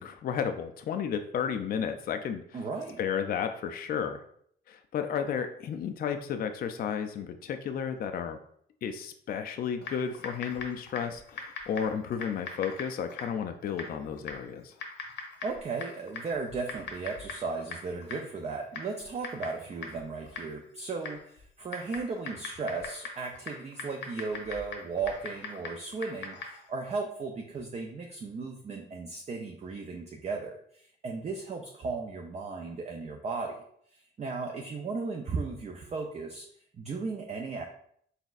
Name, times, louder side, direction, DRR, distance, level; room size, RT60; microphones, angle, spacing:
voice 1, 0.0-2.6 3.0-4.2 4.7-8.4 8.8-14.7, left 7 dB, 50° left, 7 dB, 0.4 m, -33 dB
voice 2, 2.5-3.0 15.4-33.6 33.9-36.5 36.8-37.6, right 4 dB, 35° right, 3 dB, 0.5 m, -36 dB
Typing, 9.8-26.7, left 4 dB, 70° left, 0.9 m, -43 dB
4.1 x 4.0 x 2.4 m, 0.66 s
cardioid pair, 90°, 20 cm